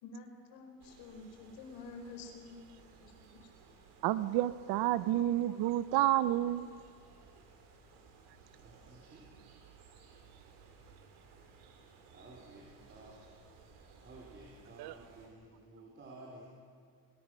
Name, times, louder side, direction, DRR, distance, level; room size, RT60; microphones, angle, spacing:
voice 1, 0.0-2.7 3.3-3.4, left 3 dB, 80° left, 3 dB, 5.1 m, -49 dB
sound 1, 0.8-15.3, right 4 dB, 90° right, 5.4 m, -59 dB
voice 2, 4.0-6.7 14.8-14.9, right 14 dB, 75° right, 14 dB, 0.8 m, -30 dB
voice 3, 8.5-9.3 12.1-13.2 14.0-16.4, right 2 dB, 30° right, -3 dB, 4.0 m, -54 dB
29.5 x 21.0 x 6.3 m, 2.2 s
cardioid pair, 150°, 38 cm